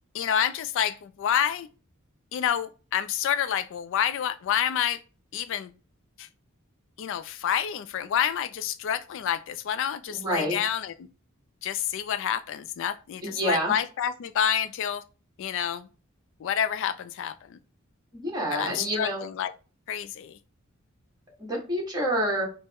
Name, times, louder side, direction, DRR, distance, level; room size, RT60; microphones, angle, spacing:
voice 1, 0.1-1.7 2.3-5.0 5.3-5.7 6.2-6.3 7.0-10.9 11.6-15.0 15.4-15.9 16.4-17.6 18.5-19.5 19.9-20.4, left 9 dB, 60° left, 0.3 m, -28 dB
voice 2, 10.1-10.6 13.2-13.7 18.1-19.2 21.4-22.5, right 1 dB, 20° right, 1.4 m, -28 dB
5.4 x 2.1 x 3.4 m
head